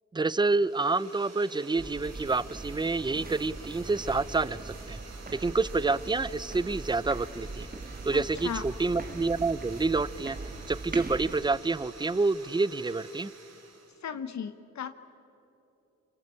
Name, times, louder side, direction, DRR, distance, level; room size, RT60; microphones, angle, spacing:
voice 1, 0.1-5.0 5.4-7.7 8.0-10.4 10.7-13.3, right 3 dB, 15° right, 18 dB, 0.6 m, -28 dB
sound 1, 0.6-14.0, right 4 dB, 60° right, 3.8 m, -50 dB
sound 2, 1.8-11.4, right 3 dB, 30° right, 1.9 m, -41 dB
voice 2, 8.1-8.6 14.0-14.9, left 7 dB, 65° left, 10 dB, 1.0 m, -36 dB
27.0 x 25.0 x 8.4 m, 2.9 s
cardioid pair, 90°, 29 cm